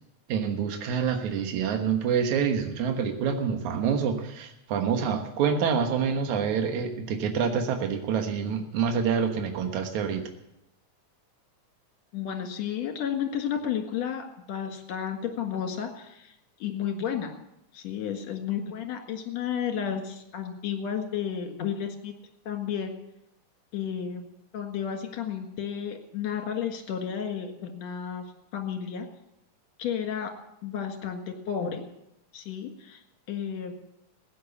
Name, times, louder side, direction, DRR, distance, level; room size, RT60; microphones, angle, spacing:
voice 1, 0.3-10.2, right 6 dB, 70° right, 4 dB, 2.7 m, -27 dB
voice 2, 12.1-16.3 16.6-17.3 17.7-22.1 22.5-22.9 23.7-28.2 28.5-29.1 29.8-30.3 30.6-31.9 32.3-33.0 33.3-33.7, left 8 dB, 65° left, 5 dB, 2.9 m, -32 dB
15.5 x 9.4 x 7.0 m, 0.83 s
omnidirectional pair, 3.5 m